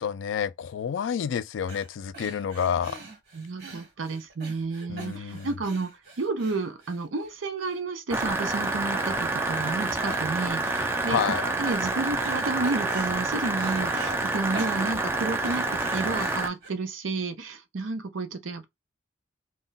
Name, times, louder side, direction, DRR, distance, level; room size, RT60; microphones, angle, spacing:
voice 1, 0.0-3.0 4.9-5.6 11.1-11.5, left 7 dB, 75° left, 0.3 m, -29 dB
sound 1, 1.7-1.9 2.1-7.3 7.6-7.8 8.1-8.7 8.9-9.8 10.1-10.9 11.3-12.4 12.6-14.2 14.5-16.7, right 2 dB, 55° right, 1.2 m, -43 dB
voice 2, 3.3-5.9 6.2-18.7, right 3 dB, 85° right, 0.6 m, -31 dB
sound 2, 8.1-16.5, right 2 dB, 10° right, 0.3 m, -28 dB
2.2 x 2.2 x 3.8 m
head